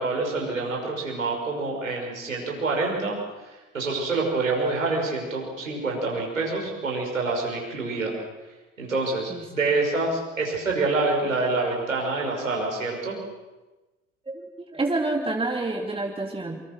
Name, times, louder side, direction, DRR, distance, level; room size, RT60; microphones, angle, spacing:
voice 1, 0.0-3.2 3.7-8.1 8.8-13.2, right 3 dB, 80° right, 0 dB, 6.1 m, -26 dB
voice 2, 14.3-16.6, right 2 dB, 15° right, 2 dB, 2.8 m, -28 dB
27.0 x 25.5 x 6.3 m, 1.1 s
figure-of-eight pair, 60°, 39 cm